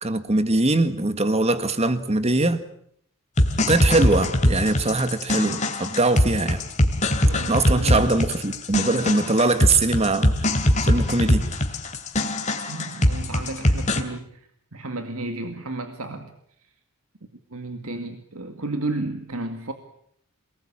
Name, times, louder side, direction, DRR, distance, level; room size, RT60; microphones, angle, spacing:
voice 1, 0.0-2.6 3.7-6.6 7.5-10.3 10.8-11.4, right 2 dB, 30° right, 11 dB, 1.7 m, -22 dB
sound 1, 3.4-14.0, left 1 dB, 35° left, 3.0 m, -22 dB
voice 2, 7.2-8.0 12.7-16.3 16.6-16.7 17.5-19.7, right 2 dB, 70° right, 7 dB, 2.1 m, -33 dB
28.0 x 19.5 x 8.7 m, 0.69 s
head